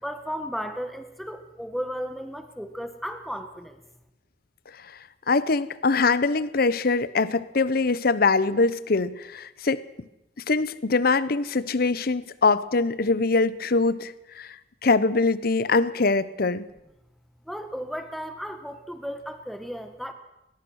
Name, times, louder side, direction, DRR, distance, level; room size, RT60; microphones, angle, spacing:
voice 1, 0.0-3.8 17.5-20.1, equal, ahead, 7 dB, 1.3 m, -34 dB
voice 2, 5.3-9.8 10.5-14.6 14.8-16.7, left 3 dB, 60° left, 17 dB, 0.8 m, -23 dB
21.0 x 20.5 x 6.4 m, 0.90 s
head